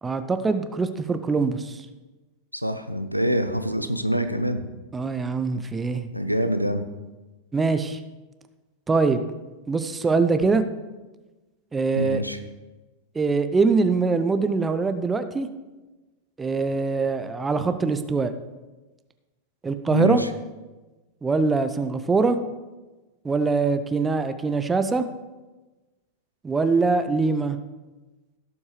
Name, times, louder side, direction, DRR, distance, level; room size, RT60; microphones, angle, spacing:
voice 1, 0.0-1.8 4.9-6.1 7.5-8.0 8.9-9.2 9.7-10.6 11.7-12.2 13.1-15.5 16.4-18.3 19.6-20.2 21.2-22.4 23.2-25.0 26.4-27.6, right 4 dB, 15° right, 10 dB, 0.7 m, -23 dB
voice 2, 2.5-4.6 6.1-6.8 12.0-12.4 19.9-20.3, equal, 90° right, 8 dB, 0.6 m, -25 dB
17.0 x 7.2 x 3.2 m, 1.2 s
figure-of-eight pair, 90°, 0 cm